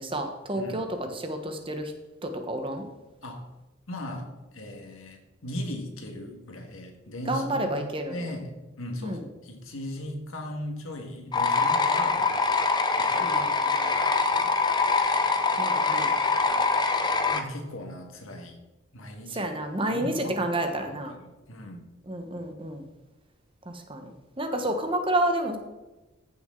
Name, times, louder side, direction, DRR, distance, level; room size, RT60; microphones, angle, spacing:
voice 1, 0.0-1.9 2.2-2.9 7.3-8.2 9.0-9.2 13.2-13.9 15.6-16.2 19.3-21.1 22.1-22.8 23.7-24.1 24.4-25.6, right 1 dB, 25° right, 5 dB, 1.1 m, -30 dB
voice 2, 3.9-12.3 13.0-13.4 14.3-14.6 17.3-18.6 18.9-19.5 19.8-20.4 20.8-21.8, left 1 dB, 80° left, 3 dB, 1.8 m, -38 dB
sound 1, 11.3-17.4, left 4 dB, 20° left, 0.6 m, -24 dB
14.5 x 6.5 x 3.8 m, 1.1 s
head